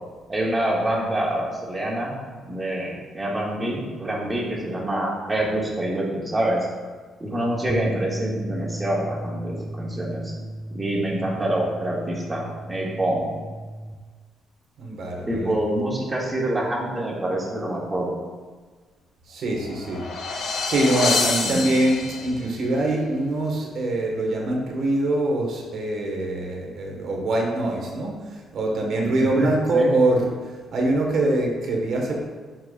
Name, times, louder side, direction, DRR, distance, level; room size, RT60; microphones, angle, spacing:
voice 1, 0.3-2.1 2.5-6.7 7.2-10.3 10.7-13.3 15.3-18.1 21.4-21.6 29.2-29.9, right 1 dB, 20° right, -3 dB, 2.0 m, -26 dB
sound 1, 7.7-14.0, right 1 dB, ahead, 0.6 m, -35 dB
voice 2, 14.8-15.5 19.3-20.1 20.7-30.3 30.7-32.2, right 2 dB, 65° right, 0 dB, 1.6 m, -24 dB
sound 2, 19.5-22.5, left 4 dB, 75° left, 2.0 m, -27 dB
11.5 x 4.7 x 2.5 m, 1.4 s
cardioid pair, 90°, 0 cm